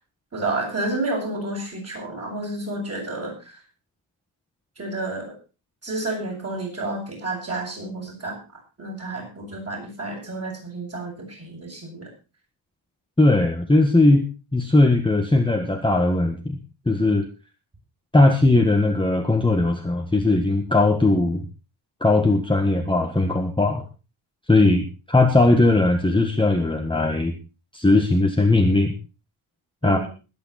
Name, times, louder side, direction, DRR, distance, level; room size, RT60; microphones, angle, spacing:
voice 1, 0.3-3.6 4.8-5.4 5.8-12.1 29.8-30.1, right 2 dB, 30° right, -1 dB, 7.5 m, -30 dB
voice 2, 13.2-14.2 14.5-16.6 16.8-17.3 18.1-21.4 22.0-23.8 24.5-27.4 27.7-28.9 29.8-30.0, left 2 dB, 10° left, 3 dB, 1.6 m, -19 dB
21.0 x 9.0 x 4.2 m, 0.32 s
wide cardioid pair, 175°, 50 cm